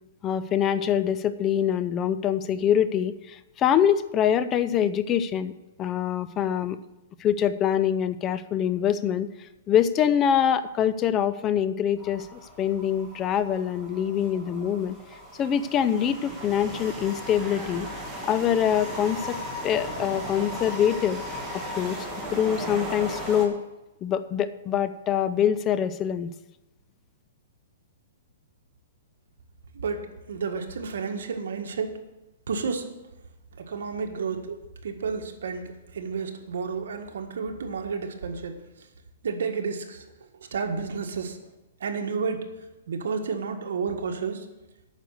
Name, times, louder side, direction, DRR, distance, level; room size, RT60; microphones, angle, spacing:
voice 1, 0.2-5.5 5.8-6.8 7.2-15.0 15.4-17.9 18.3-19.4 19.6-21.2 21.8-23.6 24.0-26.3, left 9 dB, 20° left, 14 dB, 0.4 m, -24 dB
sound 1, 12.0-23.5, equal, 5° right, 1.9 m, -37 dB
voice 2, 29.7-32.0 32.5-32.8 33.6-38.6 39.2-40.1 40.4-41.5 41.8-42.5 42.9-44.5, right 5 dB, 80° right, 4 dB, 1.6 m, -31 dB
9.2 x 6.6 x 8.0 m, 1.0 s
hypercardioid pair, 155°, 0 cm